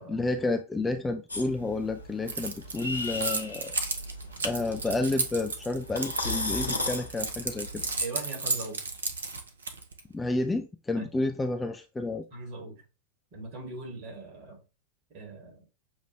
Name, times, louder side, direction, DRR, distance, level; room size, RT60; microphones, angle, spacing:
voice 1, 0.1-3.8 4.4-7.8 10.1-12.2, left 2 dB, 10° left, 0.4 m, -30 dB
sound 1, 1.3-8.0, left 2 dB, 80° left, 0.8 m, -36 dB
Keys jangling, 2.3-10.0, right 4 dB, 70° right, 0.7 m, -33 dB
voice 2, 8.0-8.8 11.0-11.1 12.3-12.8 13.3-14.6 15.1-15.7, right 3 dB, 40° right, 2.2 m, -40 dB
6.7 x 2.4 x 3.1 m
figure-of-eight pair, 90°, 0 cm